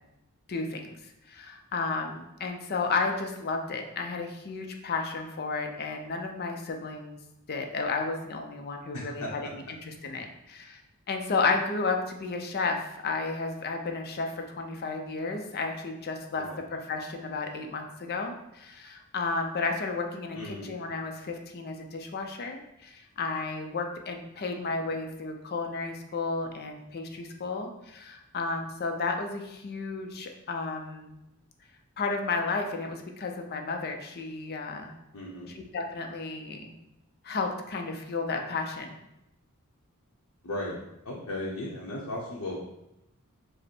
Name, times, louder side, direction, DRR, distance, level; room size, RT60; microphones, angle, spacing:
voice 1, 0.5-0.8 1.3-7.2 7.5-10.8 11.1-31.2 32.0-34.9 35.5-36.7 37.2-39.0, left 4 dB, 45° left, 4 dB, 0.5 m, -32 dB
voice 2, 8.9-9.3 16.3-16.6 20.3-20.7 35.1-35.5 40.4-40.8 41.0-42.6, left 1 dB, 80° left, -4 dB, 0.8 m, -36 dB
5.1 x 2.1 x 4.3 m, 0.88 s
head